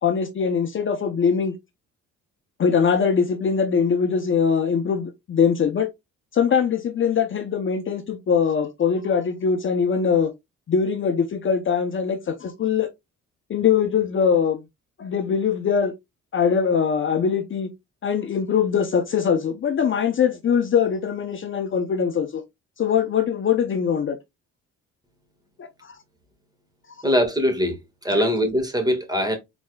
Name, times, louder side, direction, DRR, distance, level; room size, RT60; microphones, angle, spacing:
voice 1, 0.0-1.5 2.6-5.9 6.3-10.3 10.7-12.9 13.5-14.6 15.0-15.9 16.3-17.7 18.0-22.4 22.8-24.2 25.6-26.0 28.1-28.2, left 6 dB, 40° left, 0.7 m, -22 dB
voice 2, 27.0-29.4, equal, 15° right, 1.7 m, -22 dB
4.3 x 4.1 x 2.3 m
cardioid pair, 90°, 30 cm